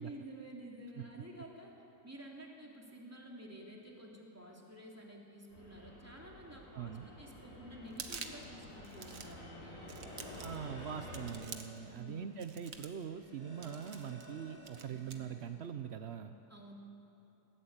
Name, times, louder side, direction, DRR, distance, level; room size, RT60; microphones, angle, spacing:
voice 1, 0.0-1.7 2.0-9.8 11.9-12.2 16.5-16.7, right 1 dB, 10° right, -2 dB, 3.0 m, -51 dB
Fixed-wing aircraft airplane, 5.5-11.3, left 1 dB, 80° left, 4.9 m, -50 dB
voice 2, 6.8-7.1 10.4-16.3, right 8 dB, 70° right, 8 dB, 0.6 m, -43 dB
sound 1, 7.9-8.5 8.8-9.4 9.9-10.7 11.1-11.8 12.4-13.0 13.6-14.3 14.6-15.2, right 6 dB, 50° right, 1.6 m, -48 dB
sound 2, 8.6-15.5, equal, 90° right, 5.0 m, -56 dB
21.5 x 16.0 x 8.8 m, 3.0 s
omnidirectional pair, 2.0 m